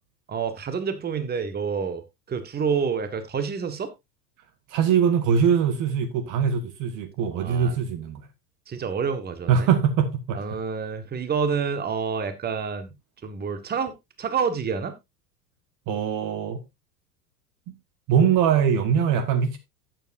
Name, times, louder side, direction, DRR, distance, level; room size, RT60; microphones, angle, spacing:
voice 1, 0.3-2.0 2.3-3.9 7.3-7.7 8.7-9.7 10.3-12.9 13.2-14.9, right 6 dB, 20° right, 1.5 m, -28 dB
voice 2, 4.7-8.2 9.5-10.4 15.9-16.6 18.1-19.6, right 7 dB, 40° right, 1.5 m, -22 dB
12.5 x 9.0 x 2.6 m
figure-of-eight pair, 85°, 47 cm